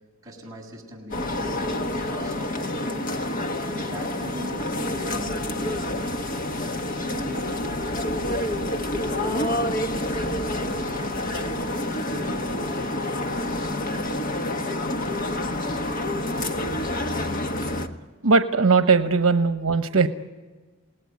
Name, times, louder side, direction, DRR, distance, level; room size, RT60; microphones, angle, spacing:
voice 1, 0.2-3.3 3.8-6.6 7.0-10.1 10.6-13.1, equal, 15° right, -2 dB, 7.0 m, -41 dB
sound 1, 1.1-17.9, left 1 dB, 40° left, 1.4 m, -28 dB
voice 2, 18.2-20.1, right 4 dB, 85° right, 9 dB, 1.0 m, -19 dB
28.0 x 18.5 x 9.6 m, 1.3 s
head